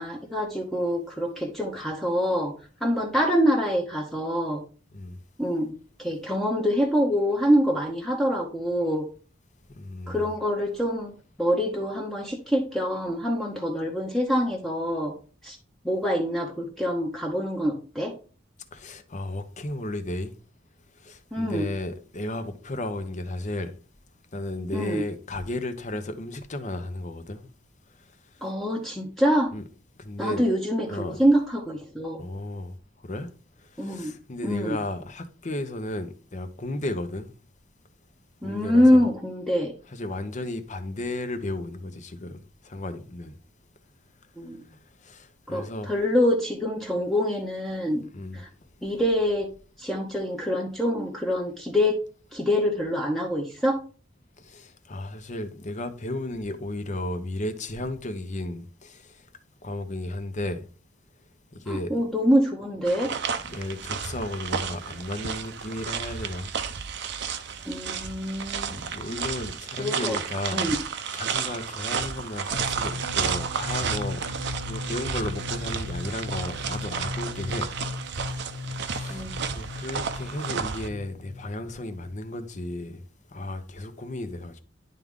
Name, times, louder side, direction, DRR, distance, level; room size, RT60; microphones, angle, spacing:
voice 1, 0.0-2.5 2.8-4.6 5.4-9.1 10.1-11.1 11.4-15.1 15.4-15.6 15.8-18.1 21.3-21.7 24.7-25.0 28.4-29.5 30.2-32.2 33.8-34.2 34.4-34.8 38.4-39.7 44.4-44.6 45.5-48.1 48.3-48.5 48.8-49.5 49.8-52.0 52.3-53.8 61.7-63.1 67.7-68.7 69.8-70.2 70.5-70.8 79.1-79.4, equal, ahead, 0.9 m, -25 dB
voice 2, 9.7-10.3 18.7-20.3 20.9-23.7 24.3-27.5 28.0-28.5 29.5-29.6 30.0-30.4 30.9-31.2 32.2-32.8 33.0-33.3 33.6-37.3 38.4-39.1 39.9-43.4 44.7-45.9 48.1-48.4 54.4-59.3 59.6-60.7 61.5-62.0 63.4-66.5 68.7-70.6 71.1-74.2 74.5-77.7 78.4-84.6, left 1 dB, 40° left, 0.8 m, -34 dB
sound 1, 62.9-80.9, right 6 dB, 65° right, 0.7 m, -32 dB
sound 2, 72.5-82.2, left 3 dB, 85° left, 1.1 m, -37 dB
10.5 x 3.6 x 3.6 m
head